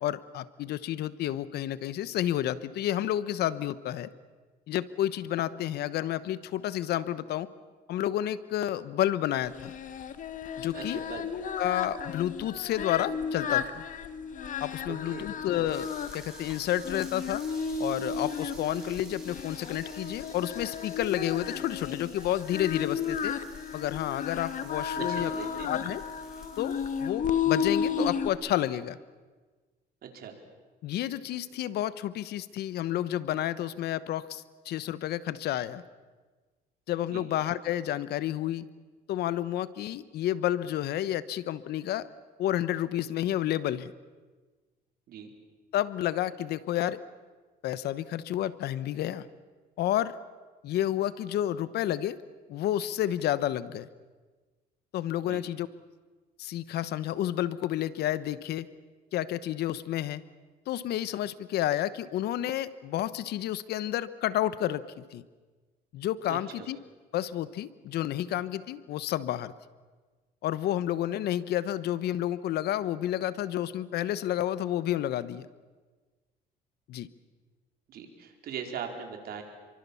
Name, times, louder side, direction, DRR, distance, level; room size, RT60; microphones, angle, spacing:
voice 1, 0.0-4.1 4.7-7.5 7.9-9.7 10.6-11.0 11.6-13.8 14.6-17.4 17.8-23.3 23.7-25.3 25.7-26.0 26.6-29.0 30.8-35.8 36.9-38.7 39.1-42.1 42.4-43.9 45.7-47.0 47.6-49.3 49.8-50.2 50.6-52.2 52.5-53.9 54.9-55.7 56.4-58.7 59.1-60.2 60.7-65.2 65.9-66.8 67.1-69.5 70.4-75.5 76.9-77.1, left 12 dB, 70° left, 16 dB, 1.1 m, -30 dB
Singing, 9.5-28.3, left 7 dB, 50° left, 1.8 m, -33 dB
voice 2, 10.7-11.3 14.9-15.3 24.9-25.7 30.0-30.4 37.1-37.2 45.1-45.3 55.2-55.4 66.3-66.7 77.9-79.4, right 7 dB, 65° right, 4 dB, 4.6 m, -40 dB
sound 1, 15.7-27.0, right 1 dB, 5° right, 7.4 m, -52 dB
29.0 x 24.0 x 7.1 m, 1.3 s
cardioid pair, 110°, 17 cm